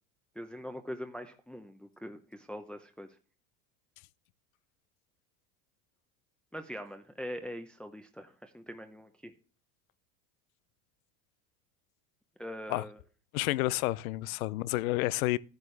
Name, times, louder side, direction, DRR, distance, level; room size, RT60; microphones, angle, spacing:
voice 1, 0.3-3.2 6.5-9.3 12.4-13.0, equal, ahead, 0.8 m, -42 dB
voice 2, 13.3-15.4, left 18 dB, 80° left, 0.6 m, -30 dB
11.0 x 9.3 x 3.3 m
supercardioid pair, 105°, 41 cm